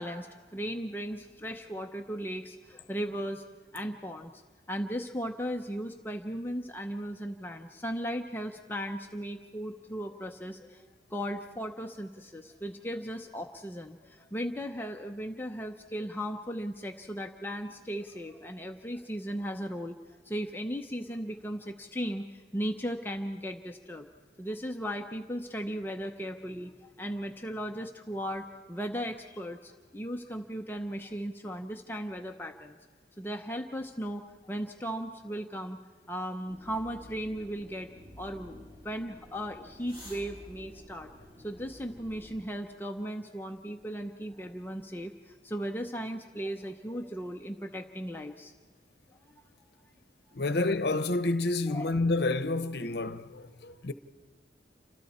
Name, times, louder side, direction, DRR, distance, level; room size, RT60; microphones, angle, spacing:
voice 1, 0.0-3.4 3.7-4.4 4.7-20.0 20.2-24.1 24.4-32.8 33.2-35.8 36.1-37.9 38.2-41.1 41.4-48.5 51.7-52.0, equal, 10° left, 0.7 m, -37 dB
sound 1, 36.5-42.4, left 1 dB, 30° right, 7.8 m, -51 dB
voice 2, 50.3-53.9, left 2 dB, 65° left, 0.9 m, -29 dB
29.0 x 25.5 x 4.3 m
head